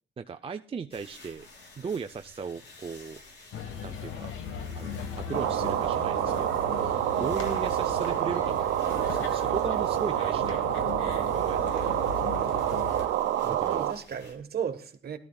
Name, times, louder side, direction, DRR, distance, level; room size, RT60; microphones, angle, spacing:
voice 1, 0.2-1.5 1.8-3.2 3.8-4.3 4.7-8.6 8.8-10.7 11.1-11.8 13.4-13.8, right 5 dB, 30° right, 0.5 m, -37 dB
sound 1, 0.9-14.4, left 2 dB, 60° left, 3.3 m, -52 dB
sound 2, 3.5-13.1, left 7 dB, 85° left, 1.4 m, -38 dB
sound 3, 5.3-13.9, right 12 dB, 90° right, 0.9 m, -28 dB
voice 2, 13.3-15.2, right 7 dB, 55° right, 1.3 m, -35 dB
18.0 x 13.0 x 2.3 m
cardioid pair, 90°, 20 cm